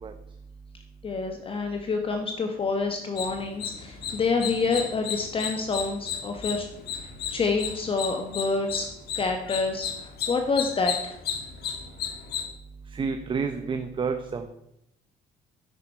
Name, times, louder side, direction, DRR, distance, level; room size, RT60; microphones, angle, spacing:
voice 1, 1.0-6.7 7.3-8.9 9.1-11.2, left 4 dB, 30° left, 5 dB, 1.1 m, -27 dB
sound 1, 3.2-12.5, left 8 dB, 70° left, 1.6 m, -34 dB
voice 2, 12.9-14.5, right 5 dB, 30° right, 7 dB, 0.8 m, -29 dB
10.0 x 8.9 x 4.4 m, 0.82 s
cardioid pair, 110°, 17 cm